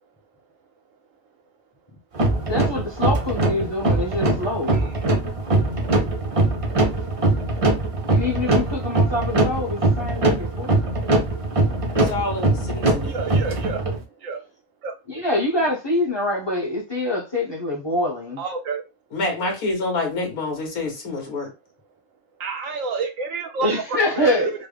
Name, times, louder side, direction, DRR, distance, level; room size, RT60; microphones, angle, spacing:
sound 1, 2.1-14.0, right 2 dB, 35° right, 0.5 m, -22 dB
voice 1, 2.5-4.8 8.1-11.0 15.1-18.4 23.6-24.5, left 1 dB, 20° left, 0.8 m, -25 dB
voice 2, 4.7-5.2 13.0-13.8 14.2-14.4 14.8-14.9 18.4-18.8 22.4-24.5, right 5 dB, 70° right, 0.9 m, -29 dB
voice 3, 11.9-13.2 19.1-21.5, left 2 dB, 85° left, 1.7 m, -27 dB
3.9 x 2.1 x 3.4 m
omnidirectional pair, 1.5 m